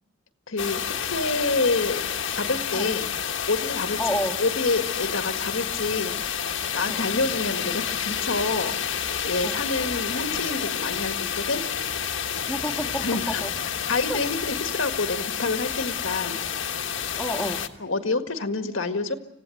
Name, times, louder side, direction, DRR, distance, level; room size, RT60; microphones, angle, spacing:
voice 1, 0.5-2.1 2.4-3.1 3.5-6.4 6.7-11.6 13.0-13.4 13.9-16.4 17.8-19.1, left 3 dB, 85° left, 7 dB, 1.7 m, -28 dB
sound 1, 0.6-17.7, left 8 dB, 70° left, 1.5 m, -29 dB
voice 2, 4.0-4.4 6.9-7.0 9.4-9.6 12.5-13.5 14.1-14.2 17.2-17.6, equal, 5° left, 1 dB, 1.8 m, -29 dB
25.5 x 16.5 x 9.2 m, 0.87 s
head